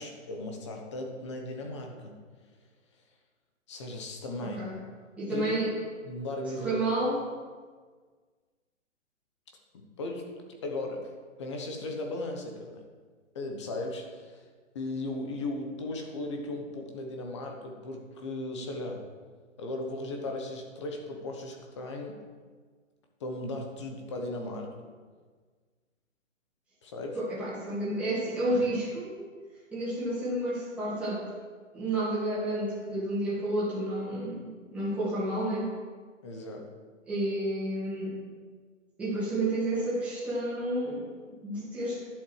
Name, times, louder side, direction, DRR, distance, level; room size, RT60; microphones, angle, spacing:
voice 1, 0.0-2.2 3.7-4.6 5.3-5.5 6.0-6.8 9.7-10.3 10.6-11.1 11.4-12.8 13.3-14.5 14.7-19.0 19.6-22.2 23.2-24.9 26.8-27.2 36.2-36.7, left 2 dB, 20° left, 2 dB, 1.1 m, -36 dB
voice 2, 4.4-4.8 5.2-5.7 6.6-7.2 27.1-29.3 29.7-31.2 31.7-35.7 37.1-38.2 39.0-41.0 41.4-42.0, right 1 dB, 5° right, -10 dB, 2.7 m, -30 dB
11.0 x 7.9 x 6.5 m, 1.5 s
hypercardioid pair, 170°, 39 cm